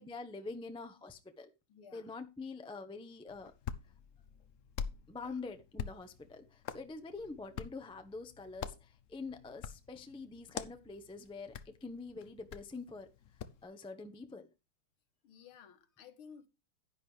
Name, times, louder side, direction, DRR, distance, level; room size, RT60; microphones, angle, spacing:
voice 1, 0.0-1.5 1.9-3.5 5.1-13.1 13.6-14.5, left 3 dB, 5° left, 0.4 m, -45 dB
voice 2, 1.7-2.1 5.2-5.4 15.2-16.5, left 7 dB, 75° left, 2.1 m, -55 dB
Hands, 3.3-13.6, left 7 dB, 90° left, 0.6 m, -46 dB
10.5 x 10.5 x 3.3 m
omnidirectional pair, 2.4 m